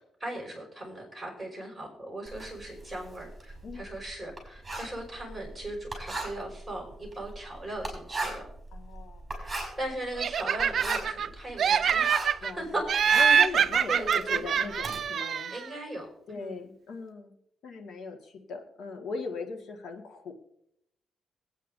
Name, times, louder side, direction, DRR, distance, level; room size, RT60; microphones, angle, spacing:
voice 1, 0.2-8.4 9.3-9.5 9.8-12.8 13.4-14.4 15.5-16.6, right 1 dB, 5° right, -3 dB, 5.6 m, -38 dB
Writing, 2.2-12.5 12.8-15.0, right 2 dB, 20° right, 5.5 m, -38 dB
voice 2, 8.7-9.4 12.4-12.6 13.1-15.5 16.3-17.3 17.6-20.3, left 4 dB, 80° left, 3 dB, 1.8 m, -39 dB
Laughter, 10.2-11.3 11.6-12.5 12.9-15.7, right 7 dB, 60° right, 0.4 m, -25 dB
22.5 x 9.0 x 2.7 m, 0.76 s
cardioid pair, 100°, 0 cm